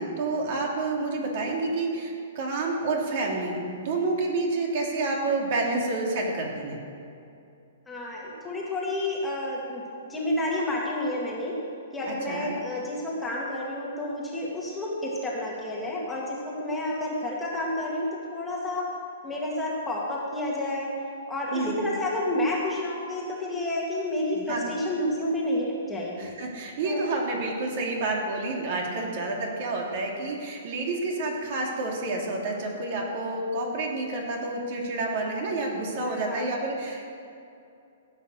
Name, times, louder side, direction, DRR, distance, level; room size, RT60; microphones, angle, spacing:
voice 1, 0.0-6.8 12.3-12.5 21.5-21.9 24.3-24.6 26.2-37.1, right 2 dB, 45° right, 0 dB, 2.9 m, -29 dB
voice 2, 7.9-11.6 11.9-18.9 19.2-20.9 21.3-26.3 26.8-27.0 36.0-36.5, left 1 dB, 5° left, -5 dB, 2.0 m, -30 dB
16.5 x 8.5 x 6.6 m, 2.6 s
hypercardioid pair, 160°, 0 cm